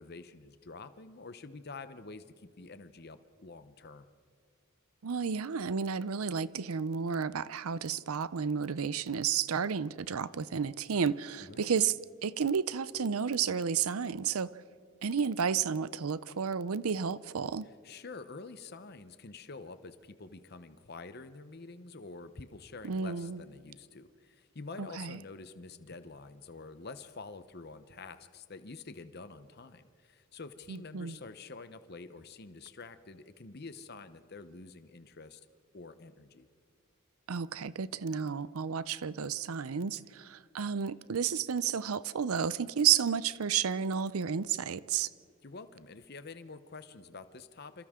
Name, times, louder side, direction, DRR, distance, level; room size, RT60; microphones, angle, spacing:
voice 1, 0.0-4.1 11.4-11.7 17.8-35.4 35.7-36.5 45.4-47.9, left 3 dB, 45° left, 11 dB, 0.8 m, -47 dB
voice 2, 5.0-12.0 12.2-14.6 15.0-17.7 22.8-23.4 24.8-25.2 30.7-31.2 37.3-45.1, right 7 dB, 80° right, 17 dB, 0.6 m, -32 dB
27.5 x 27.0 x 3.7 m, 2.2 s
head